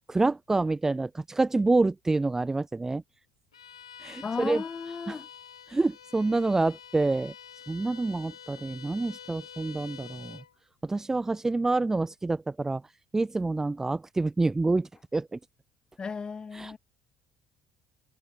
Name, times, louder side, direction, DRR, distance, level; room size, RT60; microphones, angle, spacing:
voice 1, 0.1-3.0 4.0-4.6 5.1-5.2 5.7-7.3 7.7-10.4 10.8-12.8 13.1-15.4 16.5-16.8, right 3 dB, 15° right, 0.9 m, -27 dB
Bowed string instrument, 3.5-10.5, left 8 dB, 85° left, 3.4 m, -47 dB
voice 2, 4.2-5.3 16.0-16.8, left 5 dB, 30° left, 4.1 m, -35 dB
figure-of-eight pair, 55°, 3 cm